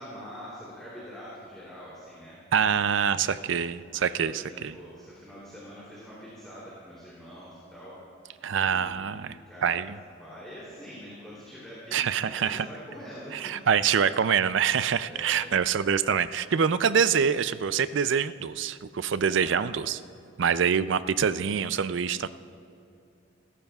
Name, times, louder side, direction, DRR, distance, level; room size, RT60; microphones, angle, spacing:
voice 1, 0.0-2.4 3.1-3.5 4.0-8.0 8.6-9.8 10.2-13.5 15.1-15.6 19.2-19.7, equal, 5° left, -9 dB, 3.1 m, -45 dB
voice 2, 2.5-4.7 8.4-9.3 9.6-10.0 11.9-12.7 13.3-20.0 20.4-22.3, right 7 dB, 65° right, 14 dB, 0.4 m, -25 dB
26.5 x 14.5 x 2.4 m, 2.7 s
head